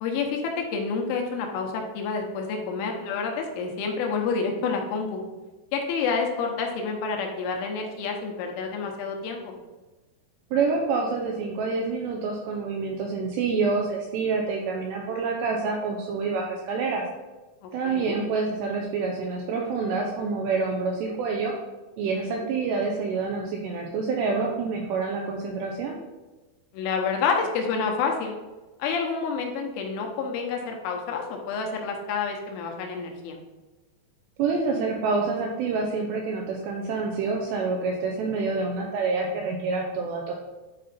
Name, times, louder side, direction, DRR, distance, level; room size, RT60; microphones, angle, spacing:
voice 1, 0.0-5.2 5.7-9.6 17.6-18.2 22.1-22.4 26.7-28.4 28.8-33.4, left 5 dB, 80° left, 2 dB, 3.2 m, -29 dB
voice 2, 10.5-17.0 17.7-21.5 22.0-26.0 34.4-40.3, right 4 dB, 85° right, 1 dB, 2.5 m, -27 dB
10.0 x 4.2 x 4.2 m, 1.2 s
omnidirectional pair, 5.8 m